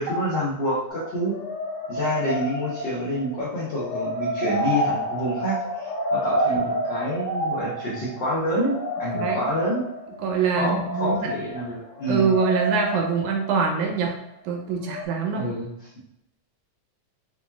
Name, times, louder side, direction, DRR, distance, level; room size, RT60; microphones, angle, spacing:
voice 1, 0.0-1.4 1.9-9.9 10.6-12.3 15.3-15.9, equal, 85° left, -8 dB, 1.0 m, -28 dB
sound 1, 0.9-14.5 14.9-15.1, right 1 dB, 60° left, 1.1 m, -29 dB
voice 2, 9.1-9.5 10.2-11.3 12.1-14.1 14.5-15.5, right 5 dB, 80° right, 2 dB, 1.9 m, -24 dB
5.7 x 2.4 x 2.3 m, 0.80 s
omnidirectional pair, 3.5 m